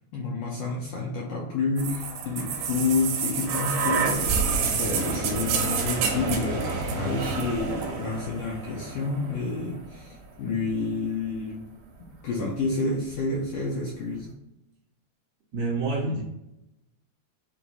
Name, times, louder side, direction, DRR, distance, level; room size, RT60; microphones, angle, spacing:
voice 1, 0.0-11.7 12.2-14.3, left 3 dB, 75° left, -3 dB, 1.6 m, -29 dB
sound 1, 1.8-9.7 10.7-10.8, right 5 dB, 85° right, 2.3 m, -28 dB
voice 2, 15.5-16.2, right 3 dB, 55° right, -6 dB, 2.4 m, -27 dB
5.5 x 2.6 x 2.9 m, 0.89 s
omnidirectional pair, 3.6 m